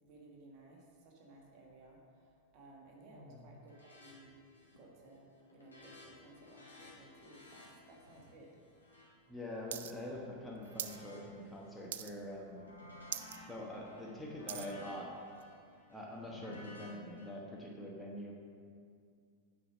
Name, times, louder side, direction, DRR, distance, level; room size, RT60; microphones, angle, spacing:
voice 1, 0.0-4.3 4.7-8.5, right 2 dB, 40° right, -1 dB, 1.7 m, -58 dB
voice 2, 3.1-3.4 9.3-12.6 13.5-15.1 15.9-18.3, left 1 dB, 5° left, -3 dB, 1.2 m, -45 dB
sound 1, 3.7-4.1 4.4-4.9 5.2-10.0 10.5-11.8 12.2-17.3, left 1 dB, 80° left, 1.9 m, -56 dB
sound 2, 9.7-9.9 10.2-11.0 11.4-11.6 11.9-12.4 12.7-12.8 13.0-13.4 13.8-14.7 15.4-15.5, right 10 dB, 60° right, 0.4 m, -42 dB
9.7 x 5.0 x 5.1 m, 2.2 s
figure-of-eight pair, 90°, 0 cm